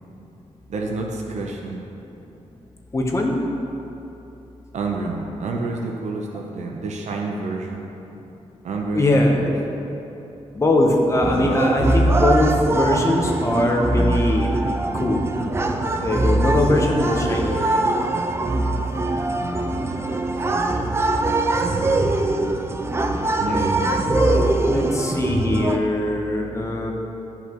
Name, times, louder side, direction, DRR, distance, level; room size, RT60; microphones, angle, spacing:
voice 1, 0.7-1.8 4.7-7.8 8.6-9.6 23.4-24.0, right 3 dB, 75° right, 0 dB, 0.8 m, -28 dB
voice 2, 2.9-3.4 8.9-9.6 10.5-14.5 14.9-15.3 16.0-17.9 24.0-26.9, left 1 dB, 25° left, 1 dB, 0.9 m, -21 dB
sound 1, 11.2-25.8, right 2 dB, 20° right, 0.4 m, -22 dB
12.5 x 5.5 x 3.0 m, 3.0 s
wide cardioid pair, 140°, 12 cm